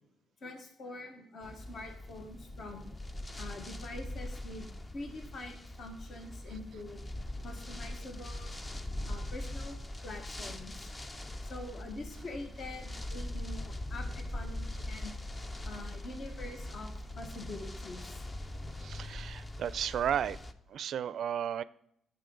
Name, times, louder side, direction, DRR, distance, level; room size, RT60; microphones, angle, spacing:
voice 1, 0.4-7.0 7.4-8.6 9.0-9.8 10.0-10.9 11.4-15.1 15.6-18.2, left 2 dB, 55° left, 4 dB, 1.5 m, -45 dB
sound 1, 1.4-20.5, left 1 dB, 20° left, 0.6 m, -41 dB
voice 2, 18.8-20.4 20.7-21.6, right 9 dB, 65° right, 18 dB, 0.4 m, -33 dB
14.0 x 5.4 x 3.9 m, 0.74 s
cardioid pair, 90°, 0 cm